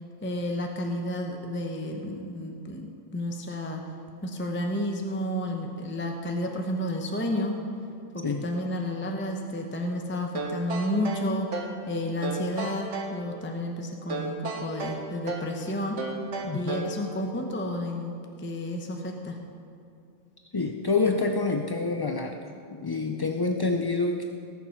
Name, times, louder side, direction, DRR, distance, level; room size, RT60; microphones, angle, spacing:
voice 1, 0.2-3.8 4.2-7.6 8.1-11.6 11.9-16.0 16.5-19.4, left 1 dB, 10° left, 2 dB, 0.8 m, -31 dB
sound 1, 10.3-11.8 12.2-13.2 14.1-15.6 16.0-17.0, right 3 dB, 80° right, 1.6 m, -33 dB
voice 2, 16.4-16.9 20.5-22.4 22.7-24.3, left 3 dB, 40° left, 3 dB, 0.3 m, -27 dB
19.0 x 7.1 x 5.7 m, 2.4 s
omnidirectional pair, 1.2 m